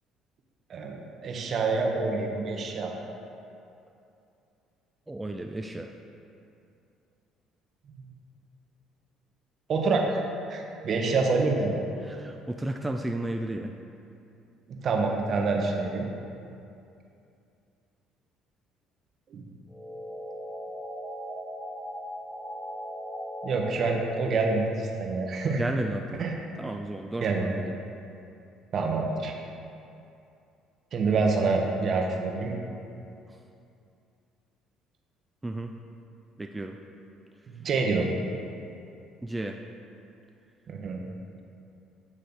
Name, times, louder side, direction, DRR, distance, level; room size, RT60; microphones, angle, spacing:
voice 1, 0.7-3.0 7.9-8.1 9.7-10.2 10.5-11.7 14.8-16.0 19.3-19.4 23.4-25.6 26.2-26.4 27.2-27.6 28.7-29.4 30.9-32.5 37.5-38.1 40.7-41.0, right 3 dB, 55° right, 2 dB, 0.8 m, -27 dB
voice 2, 5.1-5.9 12.0-13.7 25.6-26.2 26.6-27.7 33.3-33.4 35.4-35.7 36.4-36.8 39.2-39.6, right 1 dB, 15° right, 3 dB, 0.3 m, -33 dB
sound 1, 19.7-24.6, equal, 5° left, 0.7 m, -38 dB
8.5 x 3.2 x 4.0 m, 2.6 s
hypercardioid pair, 65°, 0 cm